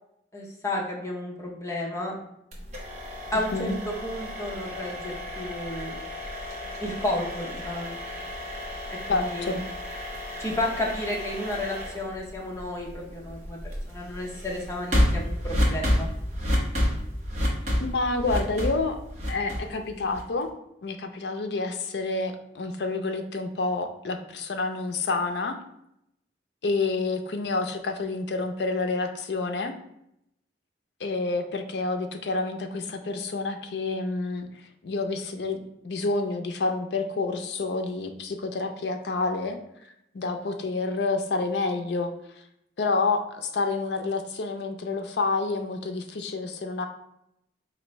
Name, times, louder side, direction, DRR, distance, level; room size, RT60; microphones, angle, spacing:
voice 1, 0.3-2.1 3.3-5.9 6.8-8.0 9.1-9.6 10.4-13.6 13.9-16.1, left 1 dB, 15° left, -2 dB, 0.6 m, -32 dB
sound 1, 2.5-20.4, left 1 dB, 40° right, 0.8 m, -31 dB
voice 2, 9.1-9.6 17.8-19.0 19.3-20.5 20.8-25.6 26.6-29.8 31.0-34.5 34.8-35.6 35.8-39.6 40.1-42.1 42.8-46.9, left 3 dB, 70° left, 6 dB, 0.4 m, -28 dB
4.3 x 2.5 x 3.0 m, 0.79 s
head